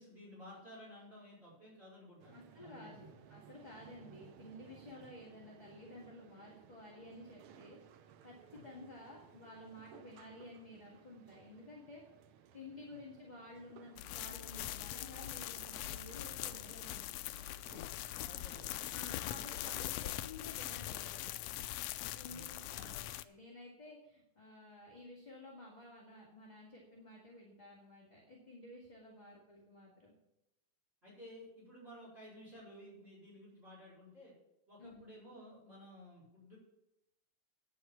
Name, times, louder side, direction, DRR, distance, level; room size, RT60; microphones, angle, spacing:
voice 1, 0.0-3.1 4.9-5.0 8.5-8.6 12.9-13.0 18.2-18.7 19.3-19.8 22.2-23.0 31.0-34.3 34.7-36.6, equal, 20° right, -6 dB, 4.7 m, -55 dB
sound 1, 2.2-19.6, right 9 dB, 85° right, 1.2 m, -60 dB
voice 2, 2.3-7.8 8.2-12.0 12.5-17.1 18.9-21.3 22.1-30.1 34.8-35.2, left 2 dB, 15° left, -4 dB, 1.9 m, -53 dB
sound 2, 14.0-23.2, left 14 dB, 85° left, 1.4 m, -42 dB
9.8 x 7.7 x 7.0 m, 0.88 s
omnidirectional pair, 3.4 m